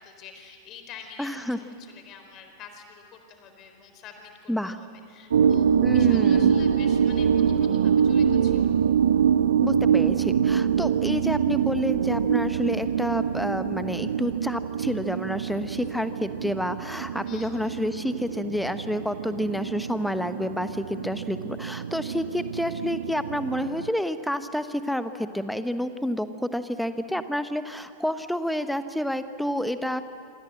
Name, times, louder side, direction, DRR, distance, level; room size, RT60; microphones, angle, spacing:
voice 1, 0.0-8.8 17.3-17.7, left 7 dB, 35° left, 5 dB, 4.3 m, -47 dB
voice 2, 1.2-1.6 4.5-4.8 5.8-6.5 9.6-30.0, equal, ahead, 11 dB, 1.2 m, -29 dB
sound 1, 5.3-23.9, right 7 dB, 65° right, 0.6 m, -24 dB
27.0 x 26.5 x 7.7 m, 2.4 s
figure-of-eight pair, 90°, 0 cm